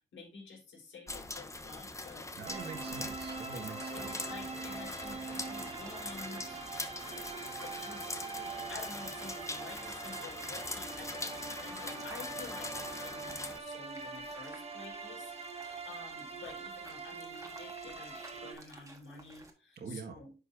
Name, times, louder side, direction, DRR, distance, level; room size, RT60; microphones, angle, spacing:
voice 1, 0.1-2.3 3.5-6.6 7.4-8.1 8.5-20.3, left 4 dB, 80° left, -2 dB, 4.3 m, -50 dB
sound 1, 1.1-13.6, left 2 dB, 15° left, 0.8 m, -42 dB
voice 2, 2.4-4.3 19.8-20.2, right 5 dB, 60° right, 4 dB, 1.7 m, -44 dB
sound 2, 2.5-19.5, right 2 dB, 15° right, 1.5 m, -57 dB
sound 3, 2.5-18.5, right 4 dB, 35° right, 1.3 m, -43 dB
10.0 x 5.5 x 2.6 m, 0.34 s
cardioid pair, 105°, 20 cm